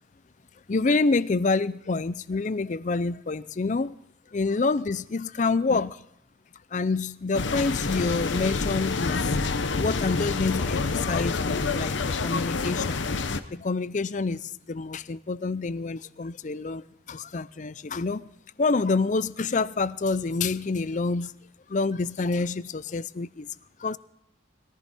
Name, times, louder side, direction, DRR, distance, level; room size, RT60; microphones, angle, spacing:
voice 1, 0.7-3.9 4.3-6.0 6.7-9.4 9.8-13.1 13.5-18.3 18.6-21.3 21.7-23.5 23.8-24.0, left 3 dB, 40° left, 0.5 m, -27 dB
sound 1, 7.3-13.4, left 4 dB, 80° left, 0.9 m, -27 dB
21.5 x 14.5 x 4.2 m
head